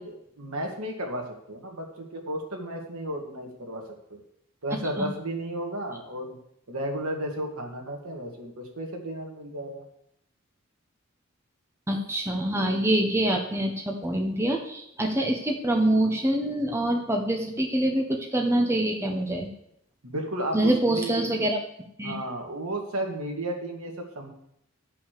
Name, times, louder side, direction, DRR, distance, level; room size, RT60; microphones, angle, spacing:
voice 1, 0.0-3.8 4.1-4.2 4.6-6.4 6.7-9.9 20.0-21.4 22.0-24.3, right 1 dB, 85° right, 1 dB, 2.1 m, -33 dB
voice 2, 11.9-19.5 20.5-21.6 22.0-22.1, right 1 dB, 10° right, 1 dB, 1.0 m, -25 dB
11.0 x 5.7 x 6.7 m, 0.75 s
head